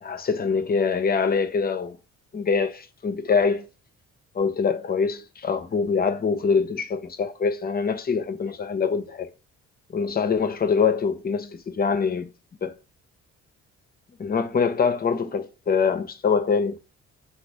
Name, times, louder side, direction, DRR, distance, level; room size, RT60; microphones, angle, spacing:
voice 1, 0.0-2.0 2.3-3.7 4.3-9.3 9.9-12.3 12.6-12.7 14.2-16.8, left 5 dB, 30° left, 0.6 m, -24 dB
4.0 x 2.4 x 4.5 m
cardioid pair, 90°, 30 cm